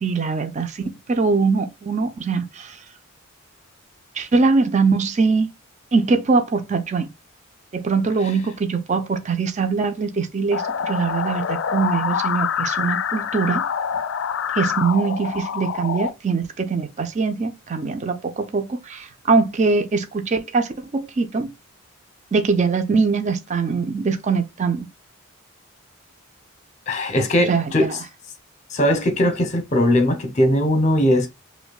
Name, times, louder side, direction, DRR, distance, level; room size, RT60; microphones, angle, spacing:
voice 1, 0.0-2.8 4.1-5.5 5.9-7.1 7.7-13.6 14.5-21.5 22.3-24.9 27.4-28.0, right 4 dB, 35° right, 0.4 m, -22 dB
sound 1, 10.5-16.1, left 7 dB, 60° left, 0.3 m, -25 dB
voice 2, 26.9-28.0 28.7-31.3, left 1 dB, 35° left, 0.8 m, -19 dB
5.1 x 2.2 x 2.3 m
head